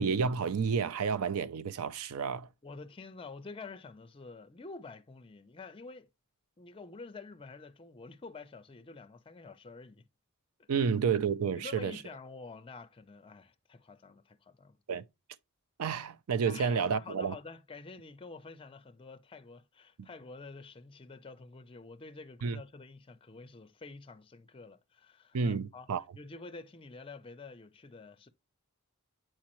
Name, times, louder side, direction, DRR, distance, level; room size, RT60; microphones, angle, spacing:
voice 1, 0.0-2.5 10.7-11.9 14.9-15.0 15.8-17.3 22.4-22.6 25.3-26.0, right 6 dB, 80° right, 0.4 m, -30 dB
voice 2, 2.6-6.1 6.6-10.1 10.7-10.9 11.5-14.8 16.5-28.3, left 4 dB, 25° left, 0.4 m, -48 dB
8.5 x 4.5 x 2.9 m
head